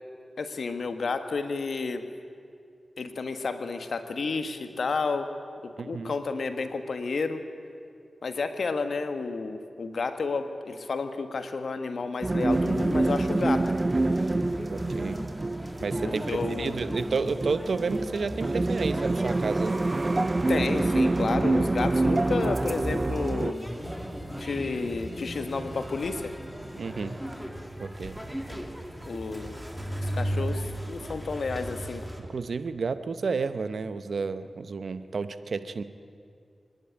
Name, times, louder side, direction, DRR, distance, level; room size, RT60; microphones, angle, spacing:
voice 1, 0.4-2.0 3.0-5.3 5.6-7.4 8.2-13.7 16.0-16.8 20.5-23.6 24.4-26.3 29.0-29.6 30.0-32.0, left 4 dB, 75° left, 8 dB, 1.4 m, -31 dB
voice 2, 5.8-6.1 14.7-15.2 15.8-19.8 26.8-27.1 27.8-28.2 32.2-35.8, right 4 dB, 75° right, 12 dB, 0.9 m, -31 dB
sound 1, 12.2-23.5, right 2 dB, 35° right, 0.4 m, -26 dB
sound 2, 12.5-32.2, equal, 5° right, 2.5 m, -37 dB
24.0 x 11.0 x 9.9 m, 2.3 s
cardioid pair, 50°, 0 cm